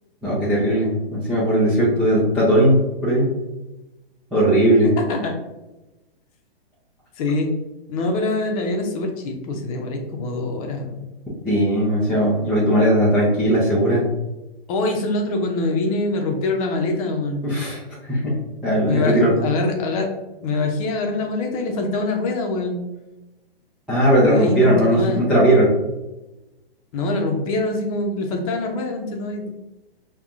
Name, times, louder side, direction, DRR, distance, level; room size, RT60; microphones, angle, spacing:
voice 1, 0.2-3.3 4.3-4.9 11.4-14.0 17.4-17.8 18.1-19.3 23.9-25.7, right 1 dB, ahead, -14 dB, 0.3 m, -18 dB
voice 2, 5.0-5.4 7.2-7.5 7.9-11.0 14.7-17.5 18.9-20.1 20.4-22.8 24.2-25.2 26.9-29.5, left 2 dB, 35° left, 3 dB, 0.7 m, -24 dB
5.3 x 2.3 x 2.4 m, 1.0 s
hypercardioid pair, 140°, 31 cm